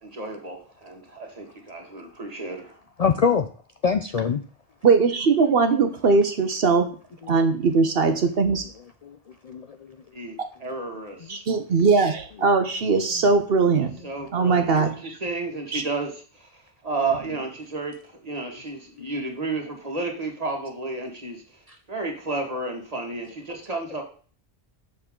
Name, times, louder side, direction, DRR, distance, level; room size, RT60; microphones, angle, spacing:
voice 1, 0.0-2.8 10.1-11.3 14.0-21.4 21.9-24.0, right 3 dB, 35° right, 1 dB, 1.9 m, -32 dB
voice 2, 3.0-3.5 3.8-4.4 9.0-9.2 9.4-9.7 19.0-19.1 21.7-21.8 23.7-23.8, left 6 dB, 50° left, 8 dB, 0.5 m, -23 dB
voice 3, 4.8-7.0 7.3-8.6 11.3-14.0 14.3-15.2 15.7-15.8, right 4 dB, 65° right, 7 dB, 1.0 m, -20 dB
7.0 x 6.3 x 3.7 m, 0.41 s
omnidirectional pair, 1.1 m